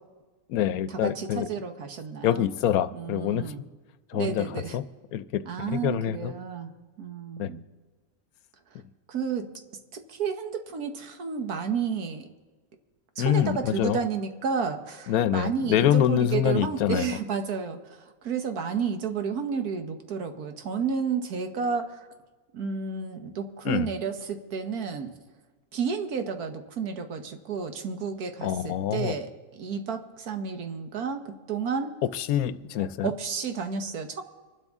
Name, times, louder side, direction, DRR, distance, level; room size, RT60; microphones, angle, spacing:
voice 1, 0.5-1.5 2.2-3.5 4.1-4.8 5.1-6.3 7.4-7.5 13.2-14.0 15.1-17.1 23.6-23.9 28.4-29.1 32.1-33.1, left 10 dB, 80° left, 15 dB, 1.1 m, -26 dB
voice 2, 1.0-2.4 2.9-3.6 4.1-4.8 5.4-6.7 7.0-7.6 9.1-9.5 9.9-12.3 13.2-22.1 22.5-25.1 25.7-31.9 33.0-34.2, right 6 dB, 90° right, 7 dB, 1.7 m, -31 dB
25.0 x 12.0 x 3.6 m, 1.3 s
omnidirectional pair, 1.5 m